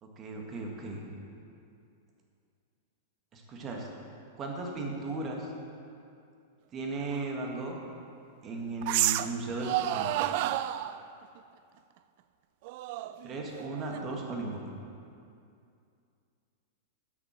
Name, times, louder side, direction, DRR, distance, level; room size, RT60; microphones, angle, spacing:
voice 1, 0.0-1.0 3.3-3.9 4.4-5.5 6.7-7.8 8.4-10.1 13.2-14.7, right 2 dB, 35° right, 0 dB, 1.7 m, -36 dB
sound 1, 7.1-7.2 8.8-9.4 9.6-11.0 12.6-14.2, right 14 dB, 55° right, 0.3 m, -30 dB
11.0 x 6.0 x 5.8 m, 2.5 s
hypercardioid pair, 105°, 0 cm